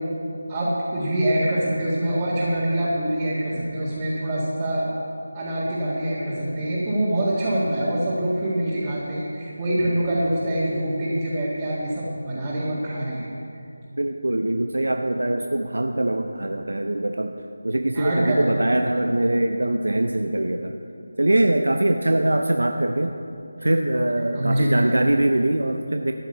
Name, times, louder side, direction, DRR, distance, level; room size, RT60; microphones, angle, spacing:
voice 1, 0.5-4.9 5.3-13.2 17.9-18.6 24.3-24.8, right 1 dB, 20° right, -9 dB, 2.0 m, -25 dB
voice 2, 14.0-17.4 17.6-20.8 21.2-23.2 23.6-26.1, right 1 dB, 80° right, 5 dB, 0.7 m, -22 dB
13.5 x 9.3 x 5.5 m, 2.7 s
figure-of-eight pair, 165°, 0 cm